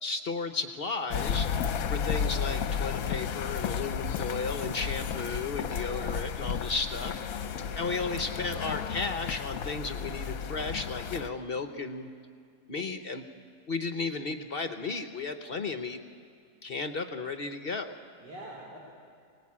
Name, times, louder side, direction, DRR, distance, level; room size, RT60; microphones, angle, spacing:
voice 1, 0.0-1.5 1.9-7.2 7.8-12.1 12.7-13.2 13.7-16.0 16.6-18.0, left 4 dB, 45° left, 8 dB, 0.8 m, -34 dB
sound 1, 1.1-11.3, left 7 dB, 65° left, 1.1 m, -33 dB
voice 2, 5.8-6.1 7.3-9.4 18.2-18.8, right 1 dB, 80° right, -4 dB, 4.0 m, -46 dB
23.5 x 18.5 x 8.6 m, 2.3 s
omnidirectional pair, 1.8 m